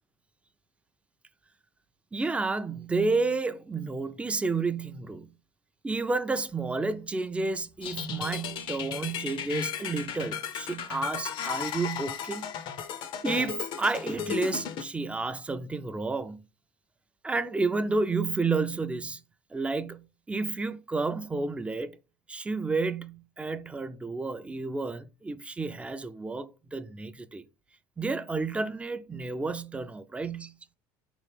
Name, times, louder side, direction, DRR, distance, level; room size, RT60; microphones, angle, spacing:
voice 1, 2.1-5.3 5.8-12.5 13.2-16.4 17.2-19.2 19.5-22.0 22.3-27.4 28.0-30.6, right 3 dB, 10° right, 0.4 m, -31 dB
sound 1, 7.8-14.8, left 8 dB, 55° left, 0.6 m, -35 dB
4.1 x 3.0 x 3.3 m
supercardioid pair, 100°, 10 cm